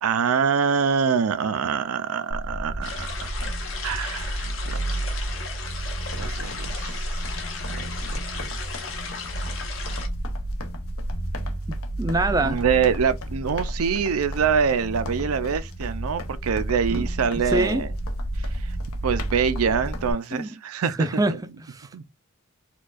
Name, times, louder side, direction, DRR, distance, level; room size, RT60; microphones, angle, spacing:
voice 1, 0.0-3.5 3.8-5.0 6.2-7.0 7.7-8.4 12.3-17.9 18.4-18.7 19.0-21.4 21.9-22.1, right 6 dB, 90° right, 0.5 m, -25 dB
sound 1, 2.3-20.1, right 1 dB, 50° left, 0.5 m, -31 dB
sound 2, 2.8-10.1, left 5 dB, 70° left, 1.0 m, -36 dB
sound 3, 5.9-20.4, left 3 dB, 85° left, 0.7 m, -44 dB
voice 2, 11.7-12.6 16.9-17.1 17.5-17.8 20.3-20.5 21.0-21.9, right 2 dB, 15° right, 0.3 m, -25 dB
4.3 x 2.3 x 2.4 m
head